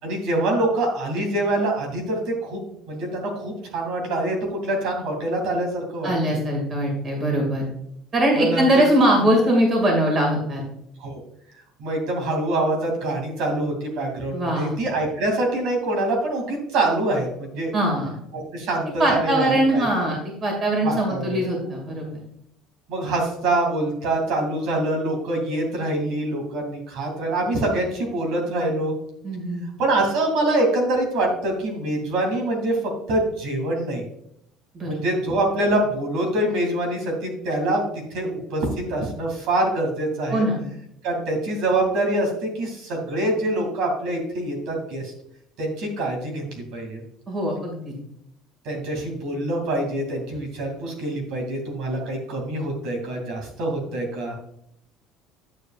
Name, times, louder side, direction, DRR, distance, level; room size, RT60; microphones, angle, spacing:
voice 1, 0.0-6.4 8.4-8.9 11.0-11.2 11.8-17.7 18.3-20.1 20.8-21.4 22.9-28.9 29.8-32.8 33.1-34.0 34.8-37.8 38.1-40.5 41.0-45.1 45.6-47.0 48.6-54.3, right 1 dB, 60° right, 1 dB, 2.7 m, -25 dB
voice 2, 6.0-7.6 8.1-10.6 14.3-14.7 17.7-18.1 19.0-22.1 29.2-29.6 34.7-34.9 40.3-40.6 47.3-47.9, right 1 dB, 25° right, 0 dB, 2.3 m, -21 dB
10.5 x 7.6 x 2.5 m, 0.74 s
cardioid pair, 170°, 0 cm